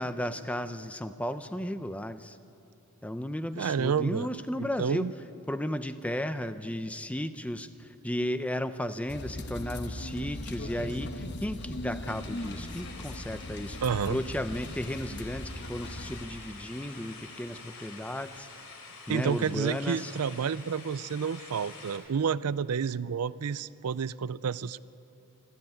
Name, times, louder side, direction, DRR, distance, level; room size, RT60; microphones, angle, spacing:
voice 1, 0.0-2.4 3.0-5.1 5.5-13.8 14.1-18.5 19.1-20.1, left 1 dB, 5° left, 11 dB, 0.6 m, -34 dB
voice 2, 3.6-4.3 4.6-5.1 13.8-14.2 19.1-24.8, right 6 dB, 85° right, 18 dB, 0.5 m, -30 dB
sound 1, 9.1-16.3, left 1 dB, 50° left, 1.1 m, -39 dB
sound 2, 12.0-22.0, left 4 dB, 85° left, 3.8 m, -47 dB
25.5 x 13.5 x 9.0 m, 2.7 s
head